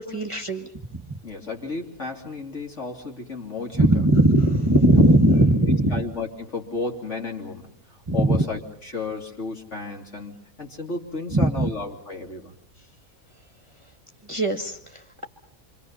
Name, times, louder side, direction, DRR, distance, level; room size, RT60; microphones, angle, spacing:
voice 1, 0.0-1.2 3.8-6.0 8.1-8.4 11.3-11.7 14.3-15.3, right 1 dB, 20° right, 5 dB, 1.6 m, -20 dB
voice 2, 1.2-4.0 4.9-5.0 5.6-12.5, left 3 dB, 55° left, 1 dB, 3.6 m, -33 dB
27.0 x 26.0 x 5.6 m, 0.64 s
omnidirectional pair, 1.5 m